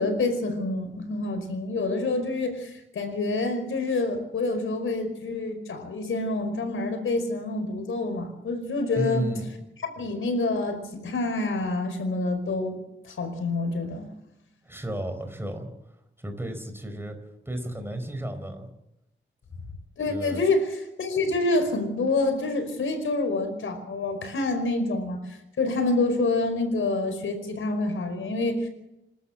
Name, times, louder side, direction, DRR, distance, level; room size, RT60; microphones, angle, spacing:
voice 1, 0.0-9.3 10.0-12.8 13.0-14.1 20.0-25.2 25.6-28.7, left 2 dB, 80° left, 7 dB, 5.1 m, -27 dB
voice 2, 9.0-9.5 14.6-15.7 16.2-17.2 17.5-18.7 20.1-20.4, right 1 dB, 10° right, 7 dB, 4.5 m, -32 dB
28.0 x 13.0 x 7.5 m, 0.87 s
wide cardioid pair, 110°, 21 cm